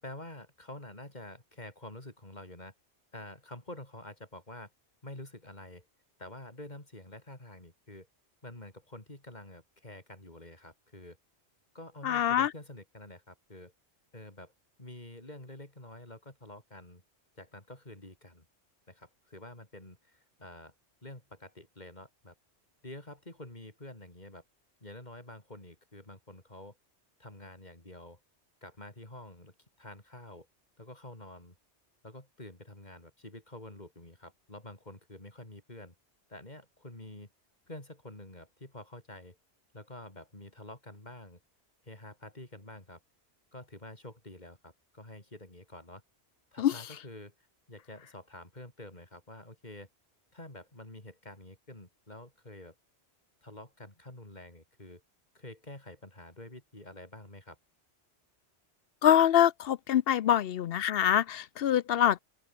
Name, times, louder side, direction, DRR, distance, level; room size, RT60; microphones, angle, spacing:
voice 1, 0.0-2.7 3.1-4.7 5.0-5.9 6.2-8.1 8.4-11.2 11.7-13.7 14.1-14.5 14.8-17.0 17.3-18.5 18.9-20.7 21.0-22.3 22.8-24.4 24.8-26.8 27.2-28.2 28.6-30.5 30.8-31.5 32.0-35.9 36.3-37.3 37.7-39.4 39.7-41.4 41.8-43.0 43.5-46.0 46.5-49.9 50.3-52.7 53.4-55.0 55.3-57.6, left 1 dB, 40° left, 4.8 m, -48 dB
voice 2, 12.0-12.5 46.6-46.7 59.0-62.2, left 10 dB, 65° left, 0.7 m, -24 dB
open air
omnidirectional pair, 1.2 m